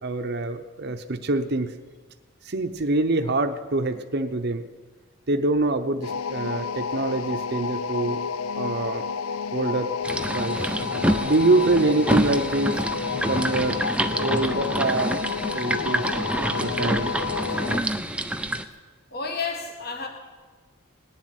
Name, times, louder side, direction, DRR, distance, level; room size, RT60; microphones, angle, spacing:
voice 1, 0.0-1.7 2.4-4.6 5.3-8.2 8.5-9.1 9.5-9.9 10.3-10.7 11.2-12.8 13.2-13.8 14.2-15.2 15.5-16.1 16.6-17.1, right 2 dB, 50° right, 7 dB, 0.7 m, -25 dB
sound 1, 6.0-17.9, left 6 dB, 80° left, 0.5 m, -30 dB
sound 2, 10.0-18.6, right 1 dB, 5° right, 0.5 m, -27 dB
voice 2, 19.1-20.1, left 4 dB, 45° left, 3 dB, 1.8 m, -30 dB
18.5 x 7.4 x 10.0 m, 1.4 s
head